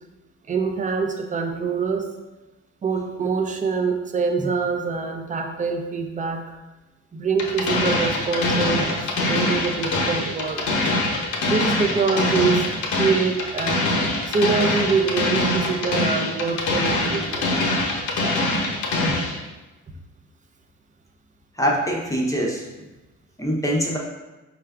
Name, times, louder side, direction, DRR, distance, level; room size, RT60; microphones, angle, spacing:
voice 1, 0.5-2.1 2.8-6.5 7.1-9.0 9.3-10.7 11.4-12.7 13.0-13.9 14.3-17.5, right 5 dB, 25° right, 4 dB, 0.5 m, -24 dB
sound 1, 7.4-19.4, left 2 dB, 75° left, 0.8 m, -23 dB
voice 2, 21.6-22.7 23.4-24.0, equal, 10° left, -2 dB, 0.7 m, -23 dB
4.6 x 2.4 x 3.4 m, 1.1 s
cardioid pair, 90°, 30 cm